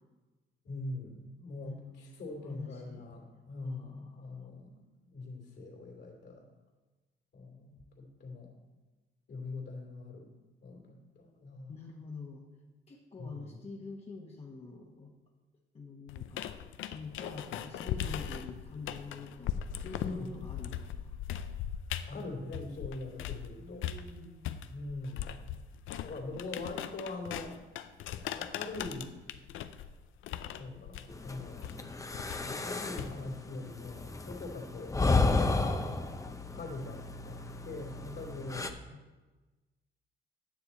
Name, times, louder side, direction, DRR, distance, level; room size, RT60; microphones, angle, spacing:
voice 1, 0.6-6.5 7.3-8.5 9.3-10.3 10.6-11.8 13.2-13.6 20.0-20.4 22.1-23.9 24.7-25.3 26.0-27.6 28.3-29.1 30.5-32.0 32.4-35.8 36.5-37.4 37.6-38.7, left 2 dB, 60° left, -1 dB, 2.6 m, -43 dB
voice 2, 1.6-3.1 3.6-4.5 11.7-12.5 12.9-15.1 15.7-16.5 16.8-21.2 23.6-24.4 38.9-39.0, left 4 dB, 30° left, -2 dB, 1.1 m, -46 dB
sound 1, 16.1-23.5 23.8-33.4, left 10 dB, 80° left, 0.5 m, -39 dB
sound 2, 31.1-38.7, left 3 dB, 15° left, 0.6 m, -33 dB
9.6 x 6.8 x 4.2 m, 1.2 s
cardioid pair, 90°, 20 cm